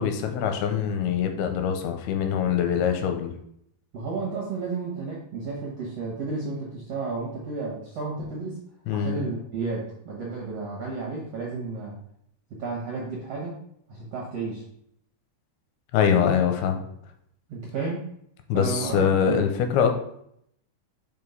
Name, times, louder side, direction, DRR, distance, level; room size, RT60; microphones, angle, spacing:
voice 1, 0.0-3.3 8.9-9.2 15.9-16.9 18.5-19.9, left 8 dB, 85° left, 6 dB, 2.6 m, -23 dB
voice 2, 3.9-8.6 8.9-11.9 12.5-13.6 13.9-14.6 17.5-18.0 18.5-19.4, right 4 dB, 65° right, -3 dB, 1.5 m, -32 dB
5.4 x 4.9 x 5.4 m, 0.71 s
omnidirectional pair, 4.7 m